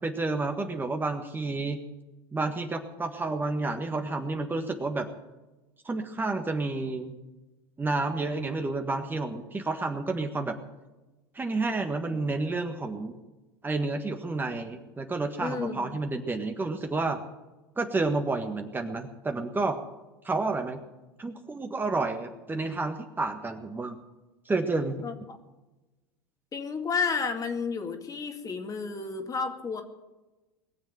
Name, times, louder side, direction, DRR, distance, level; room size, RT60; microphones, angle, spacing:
voice 1, 0.0-1.8 2.3-5.1 5.8-7.1 7.8-10.6 11.3-13.1 13.6-17.2 17.8-19.8 20.2-20.8 21.2-24.0 24.4-24.9, right 3 dB, 15° right, 5 dB, 1.6 m, -30 dB
voice 2, 15.4-16.0 25.0-25.4 26.5-29.8, left 5 dB, 30° left, 5 dB, 2.3 m, -31 dB
21.0 x 7.3 x 8.9 m, 1.1 s
hypercardioid pair, 85°, 12 cm